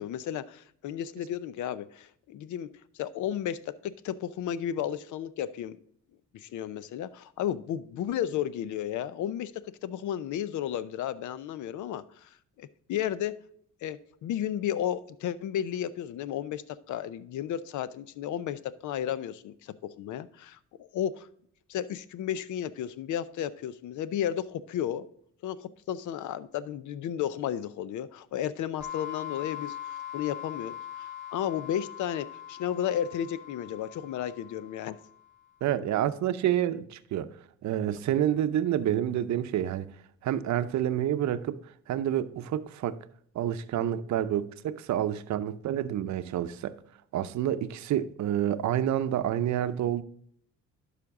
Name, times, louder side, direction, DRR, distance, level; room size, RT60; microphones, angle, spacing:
voice 1, 0.0-2.7 2.9-5.8 6.3-12.3 12.6-13.3 13.8-21.3 21.7-25.1 25.4-35.0, left 10 dB, 75° left, 0.6 m, -33 dB
sound 1, 28.8-35.3, left 11 dB, 5° right, 3.4 m, -41 dB
voice 2, 35.6-37.3 37.6-39.9 40.2-41.6 41.9-43.0 43.3-46.7 47.1-50.0, right 11 dB, 65° right, 0.7 m, -28 dB
11.5 x 5.1 x 3.6 m
cardioid pair, 90°, 30 cm